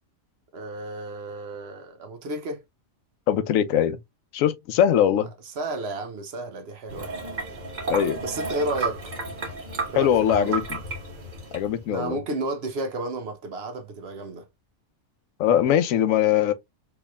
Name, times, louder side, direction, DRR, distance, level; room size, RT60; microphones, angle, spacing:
voice 1, 0.5-2.6 5.1-7.1 8.2-9.2 9.9-10.6 11.9-14.5, right 2 dB, 60° right, 0.9 m, -32 dB
voice 2, 3.3-4.0 4.3-5.3 7.9-8.2 10.0-10.8 11.5-12.2 15.4-16.5, left 10 dB, 85° left, 1.0 m, -21 dB
sound 1, 6.9-11.9, right 3 dB, 40° right, 1.2 m, -33 dB
4.6 x 2.9 x 2.3 m
omnidirectional pair, 1.3 m